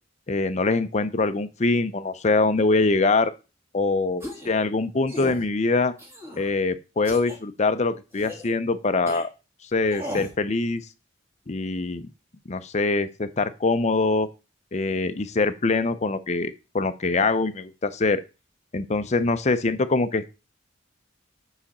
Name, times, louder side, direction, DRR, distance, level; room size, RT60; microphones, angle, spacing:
voice 1, 0.3-3.3 3.7-5.9 6.4-9.3 9.7-10.8 11.5-12.1 12.5-14.3 14.7-18.2 18.7-20.3, left 3 dB, 35° left, 11 dB, 0.6 m, -23 dB
sound 1, 4.2-4.5 5.1-5.4 6.0-6.5 7.0-7.4 8.1-8.5 9.1-9.2 9.9-10.3, left 1 dB, 15° right, 2.0 m, -36 dB
7.5 x 4.9 x 4.2 m, 0.29 s
head